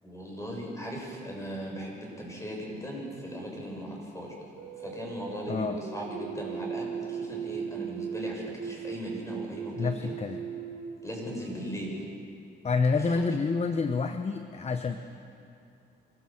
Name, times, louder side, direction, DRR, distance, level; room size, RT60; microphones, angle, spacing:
voice 1, 0.0-4.3 4.8-10.1 11.0-12.1, equal, 15° left, -2 dB, 7.4 m, -38 dB
sound 1, 4.6-11.9, right 7 dB, 75° right, 3.0 m, -38 dB
voice 2, 5.5-5.8 9.8-10.4 12.6-15.0, left 4 dB, 30° left, 8 dB, 1.0 m, -28 dB
25.5 x 16.0 x 7.5 m, 2.6 s
cardioid pair, 90°, 20 cm